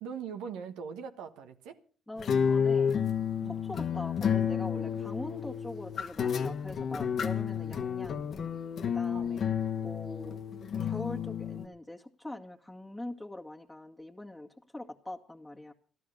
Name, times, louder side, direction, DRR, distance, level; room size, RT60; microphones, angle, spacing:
voice 1, 0.0-1.8 3.4-3.7 9.1-9.3, right 6 dB, 80° right, 1.3 m, -41 dB
voice 2, 2.1-3.0 3.5-8.3 8.9-9.5 9.8-10.4 10.7-15.7, left 1 dB, 10° left, 1.9 m, -43 dB
sound 1, 2.2-11.6, left 7 dB, 55° left, 1.1 m, -31 dB
13.5 x 12.0 x 6.4 m
supercardioid pair, 65°, 0 cm